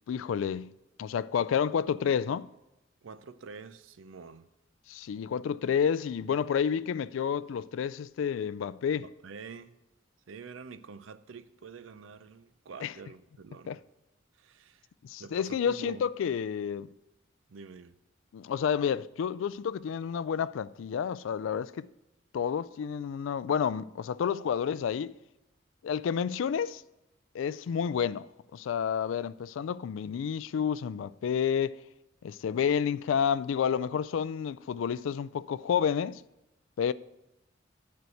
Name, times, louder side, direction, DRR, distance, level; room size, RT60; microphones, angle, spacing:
voice 1, 0.1-0.7 1.0-2.5 4.9-9.0 12.8-12.9 13.7-13.8 15.0-16.9 18.3-21.9 22.3-25.2 25.8-26.8 27.3-28.3 28.5-31.8 32.2-36.2 36.8-36.9, left 7 dB, 80° left, 0.3 m, -30 dB
voice 2, 3.0-4.5 8.9-9.8 10.3-13.8 14.3-14.9 15.2-16.0 17.5-17.9, right 5 dB, 85° right, 0.5 m, -47 dB
9.6 x 4.6 x 7.7 m
head